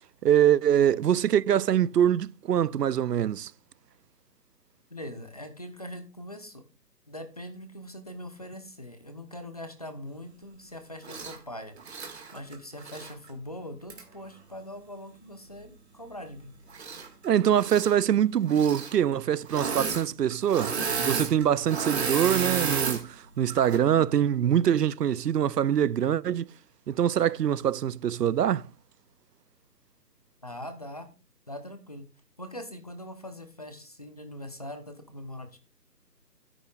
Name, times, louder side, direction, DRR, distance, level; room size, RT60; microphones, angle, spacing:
voice 1, 0.2-3.5 17.2-26.5 26.9-28.7, right 9 dB, 70° right, 0.6 m, -24 dB
voice 2, 4.9-6.6 7.1-11.8 12.3-16.5 30.4-31.1 31.5-32.0 32.4-35.6, left 1 dB, 25° left, 0.8 m, -42 dB
Engine / Mechanisms, 11.0-11.4 11.8-13.1 13.9-14.0 16.7-17.3 17.5-17.9 18.5-18.9 19.5-20.0 20.3-23.0 23.5-23.8, right 5 dB, 40° right, 2.0 m, -31 dB
11.5 x 10.0 x 2.4 m
hypercardioid pair, 170°, 50 cm